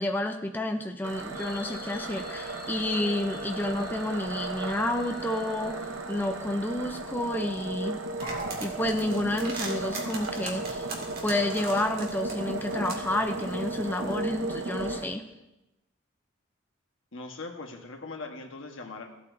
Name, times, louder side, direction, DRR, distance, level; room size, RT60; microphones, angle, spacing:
voice 1, 0.0-8.0 8.6-10.9 11.2-15.2, left 1 dB, 10° left, 5 dB, 0.5 m, -30 dB
sound 1, 1.0-15.0, right 2 dB, 70° right, 0.9 m, -35 dB
sound 2, 1.3-6.7, left 5 dB, 50° left, 1.2 m, -46 dB
sound 3, 8.2-14.2, right 3 dB, 50° right, 2.0 m, -40 dB
voice 2, 17.1-19.1, left 3 dB, 80° left, 3 dB, 1.2 m, -40 dB
15.5 x 8.4 x 2.6 m, 0.93 s
head